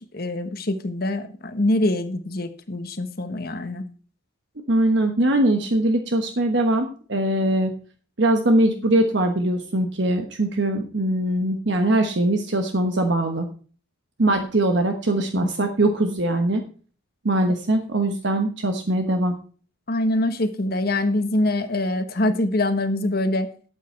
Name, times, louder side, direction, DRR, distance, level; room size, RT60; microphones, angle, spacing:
voice 1, 0.1-3.8 15.3-15.5 19.9-23.5, left 1 dB, 50° left, 9 dB, 1.3 m, -24 dB
voice 2, 4.7-7.8 8.2-13.5 14.2-16.7 17.2-19.4, right 1 dB, 60° right, 5 dB, 1.2 m, -21 dB
12.5 x 8.5 x 4.5 m, 0.40 s
head